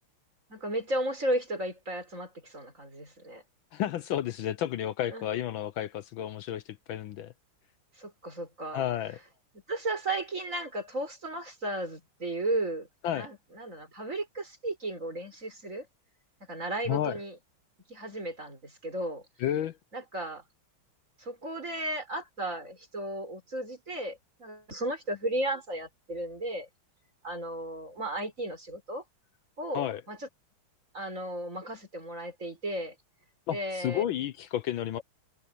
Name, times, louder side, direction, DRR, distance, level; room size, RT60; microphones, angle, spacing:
voice 1, 0.5-3.4 5.1-5.3 8.0-8.8 9.7-12.9 13.1-15.9 16.5-17.4 17.9-19.2 19.9-20.4 21.2-26.7 27.2-29.0 29.6-30.3 30.9-33.0 33.5-34.0, right 1 dB, 35° right, 5.4 m, -34 dB
voice 2, 3.7-6.6 6.9-7.3 8.7-9.2 13.0-13.3 16.9-17.2 19.4-19.8 29.7-30.0 33.5-35.0, left 11 dB, 75° left, 1.4 m, -31 dB
omnidirectional pair, 2.3 m